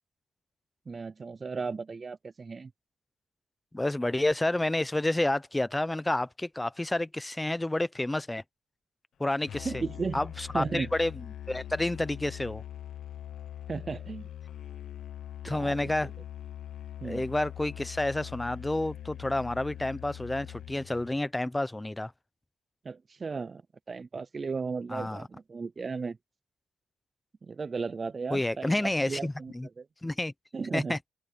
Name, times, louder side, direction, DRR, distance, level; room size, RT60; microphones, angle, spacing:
voice 1, 0.9-2.7 9.6-10.2 10.5-10.9 13.7-14.3 15.5-15.8 17.0-17.2 22.8-23.6 23.9-26.2 27.4-29.9 30.5-31.0, right 4 dB, 35° right, 0.5 m, -35 dB
voice 2, 3.7-8.4 9.2-9.8 10.1-12.6 15.4-16.1 17.0-22.1 24.9-25.2 28.3-29.7 30.0-30.3 30.7-31.0, left 1 dB, 10° left, 0.7 m, -29 dB
Musical instrument, 9.5-21.2, left 11 dB, 65° left, 1.0 m, -42 dB
open air
cardioid pair, 90°, 0 cm